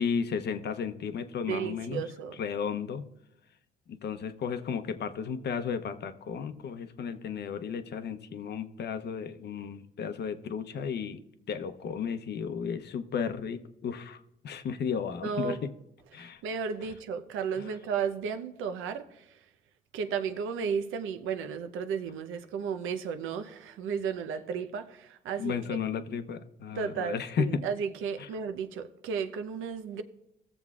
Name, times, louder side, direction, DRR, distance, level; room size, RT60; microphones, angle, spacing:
voice 1, 0.0-2.0 2.4-3.0 4.0-11.2 11.5-15.7 16.1-16.4 25.4-27.6 28.2-28.3, left 6 dB, 60° left, 0.7 m, -34 dB
voice 2, 1.4-2.4 15.2-15.6 16.2-19.3 19.9-25.8 26.7-30.0, right 6 dB, 85° right, 0.7 m, -34 dB
16.5 x 7.0 x 2.4 m
cardioid pair, 90°, 20 cm